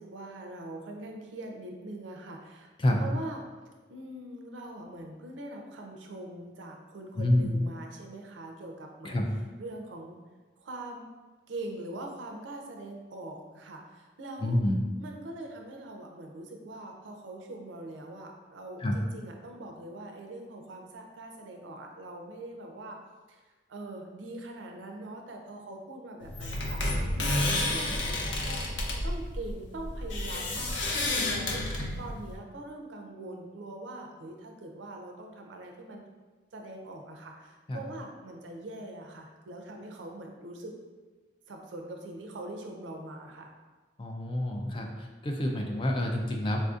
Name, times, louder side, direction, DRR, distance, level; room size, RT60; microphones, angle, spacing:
voice 1, 0.0-2.7 3.0-3.4 3.9-9.2 9.6-10.2 10.6-11.1 11.5-14.6 15.0-23.0 23.3-23.4 23.7-28.7 29.0-36.1 36.5-40.7 41.5-43.5, right 2 dB, 90° right, 2 dB, 0.5 m, -42 dB
voice 2, 7.2-7.5 9.0-9.3 14.4-14.8 18.8-19.0 37.7-37.8 44.0-44.9 45.2-46.6, left 1 dB, 25° left, 2 dB, 0.3 m, -27 dB
sound 1, 26.2-32.3, left 1 dB, 90° left, 0.6 m, -30 dB
4.1 x 2.6 x 2.4 m, 1.3 s
head